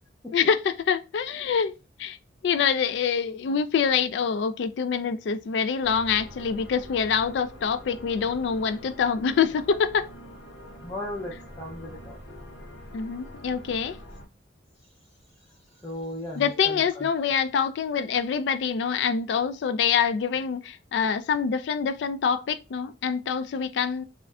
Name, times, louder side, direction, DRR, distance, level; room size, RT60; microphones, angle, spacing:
voice 1, 0.3-2.2 2.4-10.1 12.9-14.0 16.4-24.0, left 6 dB, 65° left, 0.3 m, -25 dB
sound 1, 5.8-14.3, equal, 80° left, 0.8 m, -45 dB
voice 2, 10.8-12.2 15.8-17.1, left 1 dB, 10° left, 0.6 m, -36 dB
2.4 x 2.2 x 3.5 m
head